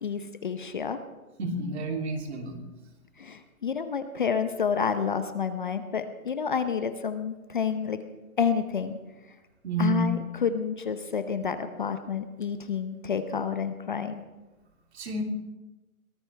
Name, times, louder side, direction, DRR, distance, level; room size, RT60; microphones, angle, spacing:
voice 1, 0.0-1.0 3.2-8.0 8.4-9.0 9.8-14.2, left 6 dB, 35° left, 9 dB, 0.7 m, -29 dB
voice 2, 1.4-2.6 9.6-10.1 14.9-15.2, right 2 dB, 45° right, 3 dB, 3.0 m, -29 dB
23.0 x 18.0 x 3.3 m, 1.1 s
hypercardioid pair, 170°, 44 cm